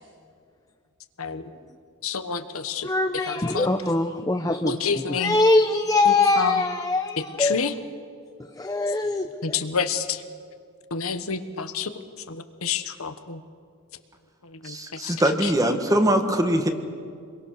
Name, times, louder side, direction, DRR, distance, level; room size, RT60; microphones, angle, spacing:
voice 1, 1.2-1.5 2.0-2.9 3.3-3.7 4.6-5.3 6.0-6.6 7.2-7.7 9.4-10.2 10.9-11.9 12.3-13.4 14.4-15.5, left 5 dB, 70° left, 9 dB, 1.3 m, -29 dB
voice 2, 2.8-4.8 5.1-7.6 8.4-9.6, left 2 dB, 15° left, 6 dB, 0.8 m, -23 dB
voice 3, 14.6-16.7, right 1 dB, 15° right, 6 dB, 1.7 m, -22 dB
28.0 x 22.5 x 6.6 m, 2.3 s
head